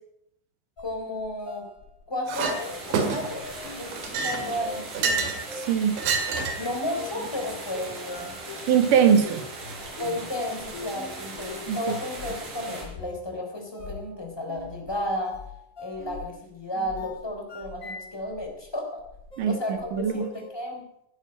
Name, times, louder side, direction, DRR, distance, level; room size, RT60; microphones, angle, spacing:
sound 1, 0.8-18.7 19.0-20.5, left 3 dB, 55° left, 0.9 m, -43 dB
voice 1, 0.8-1.6 2.1-3.4 3.7-3.9 4.2-5.2 6.6-8.3 10.0-15.3 15.8-19.0 19.4-20.8, left 1 dB, 5° left, 1 dB, 2.9 m, -33 dB
sound 2, 2.3-12.8, right 2 dB, 50° right, 5.1 m, -39 dB
Chink clink, 2.3-2.6 2.9-3.4 3.9-5.4 6.0-6.7, right 5 dB, 80° right, 4.3 m, -27 dB
voice 2, 5.6-6.0 8.7-9.4 11.7-11.8 19.4-20.3, right 7 dB, 65° right, 8 dB, 2.3 m, -21 dB
13.5 x 9.8 x 9.0 m, 0.78 s
omnidirectional pair, 5.2 m